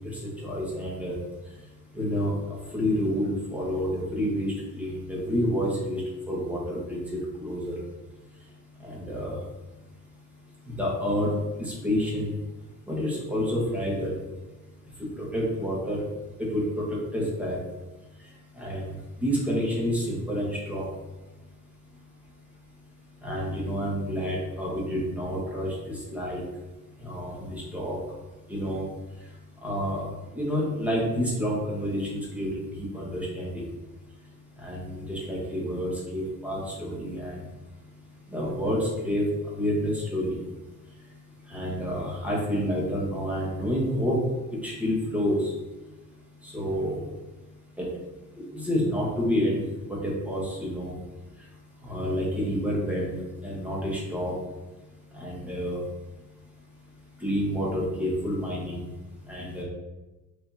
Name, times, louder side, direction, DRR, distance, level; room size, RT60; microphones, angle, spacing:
voice 1, 0.1-1.1 1.9-6.0 6.3-7.8 8.8-9.4 10.7-11.3 11.6-12.3 12.9-14.1 15.2-16.0 16.4-17.6 18.6-18.8 19.2-20.9 23.2-26.4 27.0-28.0 28.5-28.8 29.6-30.0 30.3-32.5 32.7-33.6 34.6-37.4 38.3-39.2 39.6-40.4 41.5-44.2 44.6-45.5 46.4-47.0 47.8-47.9 48.4-49.6 49.8-50.9 51.8-54.3 55.1-55.8 57.2-58.8 59.3-59.6, equal, 5° right, -5 dB, 1.0 m, -29 dB
5.1 x 2.6 x 2.6 m, 1.1 s
cardioid pair, 140°, 32 cm